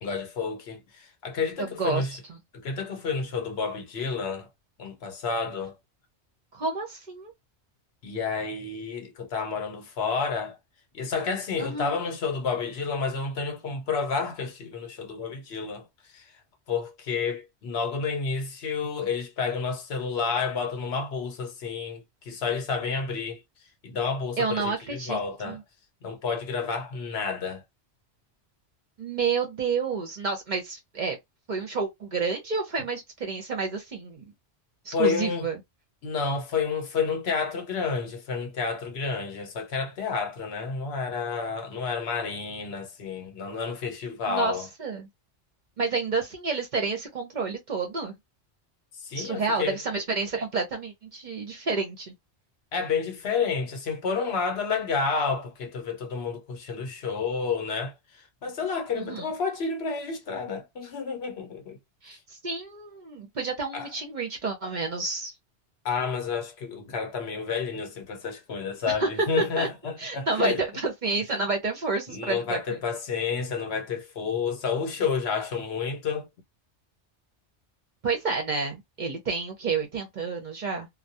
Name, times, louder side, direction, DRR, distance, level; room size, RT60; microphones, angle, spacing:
voice 1, 0.0-2.1 2.5-4.5 4.8-5.8 8.0-10.6 10.9-15.9 16.1-16.3 16.7-23.4 23.8-25.6 26.0-27.6 34.9-35.5 36.0-44.7 49.0-49.8 52.7-61.8 63.7-63.9 65.8-70.6 72.1-76.3, left 5 dB, 70° left, 0.9 m, -30 dB
voice 2, 6.5-7.3 11.6-12.0 24.4-25.2 25.4-25.6 29.0-31.2 31.5-34.3 34.8-35.6 44.3-45.1 45.8-48.1 49.1-52.1 59.0-59.3 62.0-65.3 68.9-69.7 70.0-72.8 78.0-80.9, right 4 dB, 50° right, 0.6 m, -29 dB
2.2 x 2.0 x 2.7 m
omnidirectional pair, 1.2 m